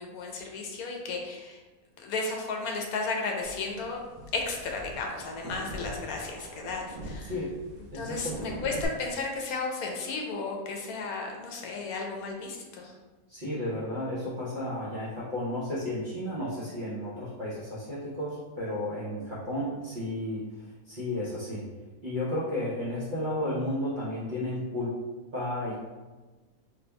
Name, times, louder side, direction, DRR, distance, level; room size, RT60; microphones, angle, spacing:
voice 1, 0.0-1.6 2.0-4.0 4.3-7.3 7.9-12.9, left 3 dB, 90° left, 1 dB, 1.1 m, -34 dB
sound 1, 3.4-8.9, right 1 dB, 85° right, 1.2 m, -42 dB
voice 2, 7.9-8.4 13.3-20.5 20.9-21.6 22.0-25.0 25.3-25.8, left 1 dB, 40° right, -9 dB, 0.8 m, -33 dB
4.2 x 3.2 x 2.2 m, 1.2 s
omnidirectional pair, 1.5 m